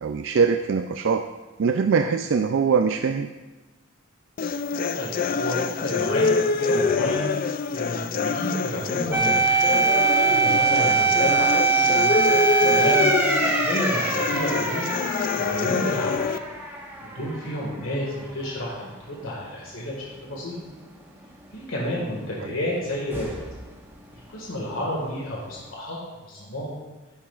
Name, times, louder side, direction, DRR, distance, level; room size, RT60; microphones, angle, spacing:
voice 1, 0.0-1.2 1.6-3.3, right 5 dB, 60° right, 6 dB, 0.3 m, -22 dB
sound 1, 4.4-16.4, left 4 dB, 40° left, 0.3 m, -26 dB
voice 2, 4.9-6.2 6.5-7.3 7.7-9.6 10.3-13.1 13.6-14.9 15.3-16.3 17.0-20.6 21.5-23.3 24.1-26.0 26.2-26.7, equal, 75° left, -3 dB, 1.8 m, -31 dB
sound 2, 9.1-17.8 18.1-18.2 23.1-23.7, right 4 dB, 10° right, 1.3 m, -23 dB
11.5 x 11.0 x 2.4 m, 1.2 s
head